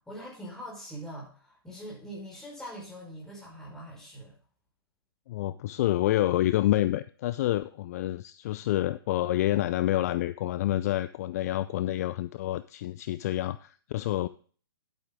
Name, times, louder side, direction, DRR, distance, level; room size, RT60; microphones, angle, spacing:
voice 1, 0.0-4.3, equal, 5° left, -3 dB, 5.0 m, -43 dB
voice 2, 5.3-14.3, left 14 dB, 40° left, 16 dB, 0.4 m, -28 dB
10.5 x 8.6 x 3.6 m, 0.42 s
figure-of-eight pair, 120°, 13 cm